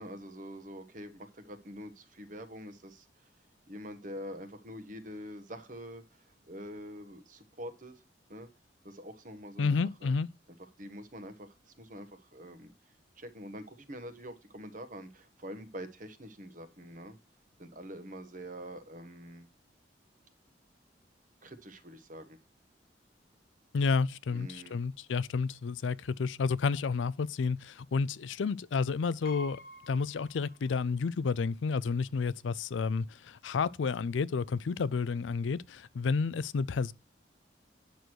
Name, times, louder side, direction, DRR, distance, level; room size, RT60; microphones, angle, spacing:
voice 1, 0.0-3.3 3.7-8.0 8.3-8.5 8.8-10.1 10.8-12.7 13.2-17.2 17.6-19.5 21.4-22.4 24.3-24.8, equal, 45° right, 1.2 m, -45 dB
voice 2, 9.6-10.3 23.7-29.6 29.9-36.9, left 5 dB, 85° left, 0.4 m, -30 dB
Piano, 29.2-31.1 31.4-31.5 32.6-32.7 33.0-33.3, equal, 50° left, 0.8 m, -49 dB
9.3 x 6.3 x 4.5 m
head